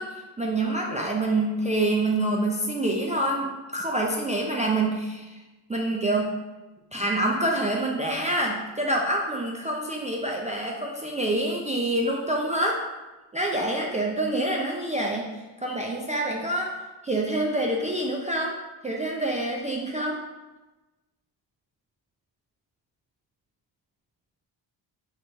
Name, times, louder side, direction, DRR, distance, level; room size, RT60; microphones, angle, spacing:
voice 1, 0.0-5.4 5.7-6.4 6.9-12.8 13.3-15.2 15.6-16.7 17.0-18.6 18.8-20.2, right 1 dB, 20° right, -2 dB, 0.3 m, -26 dB
4.0 x 2.3 x 4.4 m, 1.1 s
cardioid pair, 95°, 46 cm